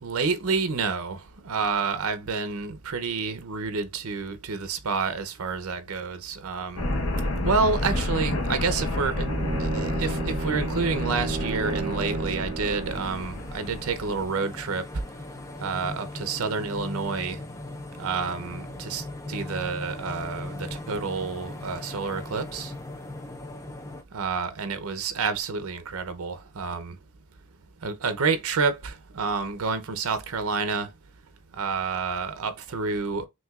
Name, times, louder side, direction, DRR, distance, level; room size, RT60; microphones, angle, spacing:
voice 1, 0.0-6.8 7.4-9.3 9.6-14.8 15.6-17.4 18.0-22.7 24.1-26.9 27.8-30.9 31.6-33.3, right 4 dB, 80° right, 0.7 m, -29 dB
sound 1, 6.8-14.2, left 1 dB, 85° left, 1.0 m, -30 dB
Bowed string instrument, 9.1-13.3, right 3 dB, 25° right, 0.7 m, -33 dB
sound 2, 12.6-24.0, left 2 dB, 15° left, 0.4 m, -39 dB
6.1 x 2.7 x 2.4 m
head